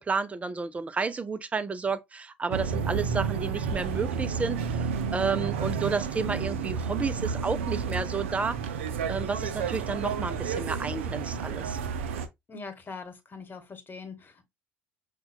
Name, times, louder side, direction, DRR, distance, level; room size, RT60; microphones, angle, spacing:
voice 1, 0.0-8.6 9.1-11.8, right 4 dB, 20° right, 0.4 m, -31 dB
sound 1, 2.5-12.3, right 6 dB, 80° right, 0.4 m, -31 dB
voice 2, 12.5-14.5, left 4 dB, 30° left, 1.1 m, -42 dB
5.6 x 2.2 x 2.2 m
hypercardioid pair, 65°, 7 cm